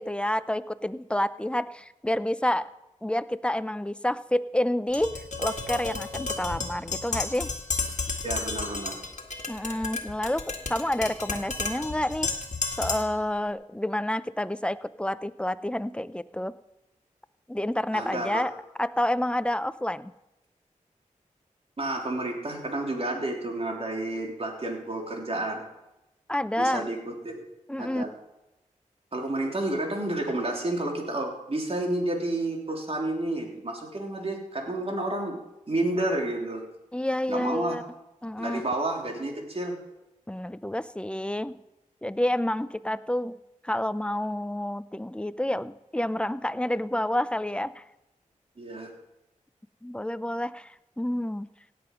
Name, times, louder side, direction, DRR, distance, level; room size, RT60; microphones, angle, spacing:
voice 1, 0.0-2.7 3.0-5.1 5.4-7.5 9.5-10.4 10.7-12.3 12.8-16.5 17.5-18.5 18.8-20.1 26.3-26.9 27.7-28.0 36.9-37.8 38.2-38.6 40.3-41.6 42.0-43.4 43.6-47.8 49.8-51.5, left 1 dB, 5° left, 15 dB, 0.6 m, -29 dB
Tap, 4.9-13.2, left 4 dB, 55° left, 1.9 m, -32 dB
voice 2, 8.2-8.9 17.9-18.4 21.8-25.6 26.6-27.5 27.8-28.1 29.1-35.4 35.7-36.6 37.3-37.8 38.4-39.8 48.6-48.9, right 1 dB, 45° right, 1 dB, 3.3 m, -30 dB
17.0 x 7.8 x 5.3 m, 0.93 s
cardioid pair, 45°, 14 cm